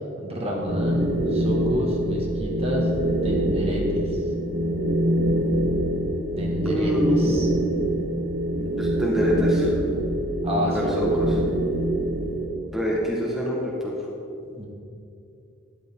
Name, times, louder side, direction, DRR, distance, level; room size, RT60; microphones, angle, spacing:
voice 1, 0.2-2.8 3.2-4.0 6.4-6.9 7.2-7.5 10.4-11.2 14.5-14.7, equal, 30° right, -1 dB, 1.7 m, -29 dB
sound 1, 0.7-12.5, right 1 dB, 80° right, 1.5 m, -24 dB
voice 2, 6.6-7.2 8.6-9.7 10.7-11.4 12.7-14.0, equal, ahead, -5 dB, 1.4 m, -25 dB
12.5 x 10.5 x 3.7 m, 2.6 s
head